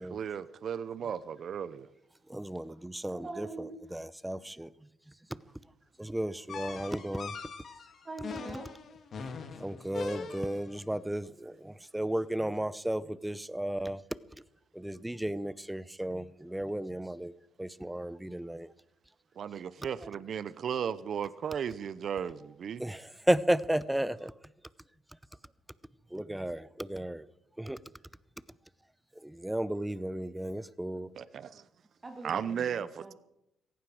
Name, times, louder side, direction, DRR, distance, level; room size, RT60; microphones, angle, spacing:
voice 1, 0.0-1.9 19.4-22.8 31.1-31.6 32.2-33.1, right 8 dB, 60° right, 0.7 m, -35 dB
voice 2, 2.3-3.5 3.9-4.7 6.0-7.3 9.6-14.0 14.7-17.3 17.6-18.7 22.8-24.3 26.1-27.3 27.7-27.8 29.2-31.1, right 1 dB, 5° right, 0.7 m, -33 dB
voice 3, 3.1-4.0 8.0-8.7 20.0-20.1 32.0-33.1, right 3 dB, 30° right, 1.8 m, -43 dB
sound 1, 6.5-10.8, left 5 dB, 55° left, 2.6 m, -42 dB
17.0 x 15.5 x 5.0 m
cardioid pair, 90°, 0 cm